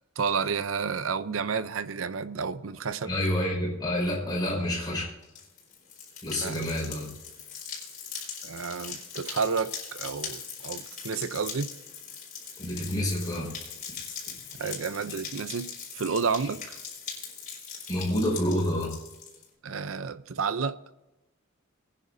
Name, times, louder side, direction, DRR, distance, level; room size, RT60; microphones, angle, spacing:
voice 1, 0.2-3.2 6.4-6.6 8.4-11.7 14.6-16.8 19.6-20.8, right 5 dB, 80° right, 0.6 m, -31 dB
voice 2, 3.1-5.1 6.2-7.1 12.6-13.6 14.6-14.7 15.1-15.2 17.9-18.9, left 1 dB, 20° left, 5.2 m, -28 dB
sound 1, 5.2-19.4, left 6 dB, 40° left, 4.3 m, -41 dB
22.5 x 10.0 x 2.7 m
head